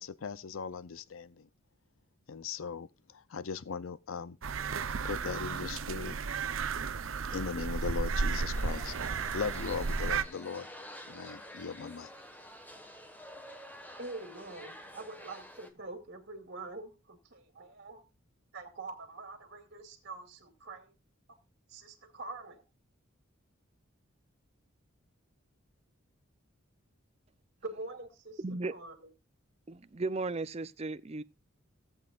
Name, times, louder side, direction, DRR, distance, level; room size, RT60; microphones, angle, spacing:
voice 1, 0.0-1.5 2.3-4.4 5.0-6.1 7.3-10.7 11.1-12.1, left 5 dB, 75° left, 0.5 m, -39 dB
sound 1, 4.4-10.2, right 5 dB, 70° right, 0.7 m, -33 dB
sound 2, 8.5-15.7, left 1 dB, 10° left, 1.4 m, -49 dB
voice 2, 14.0-18.0 18.5-20.9 21.7-22.6 27.6-28.4 28.7-29.1, right 3 dB, 55° right, 2.3 m, -45 dB
voice 3, 28.4-28.7 29.7-31.2, right 3 dB, 30° right, 0.5 m, -35 dB
17.0 x 8.0 x 2.4 m
head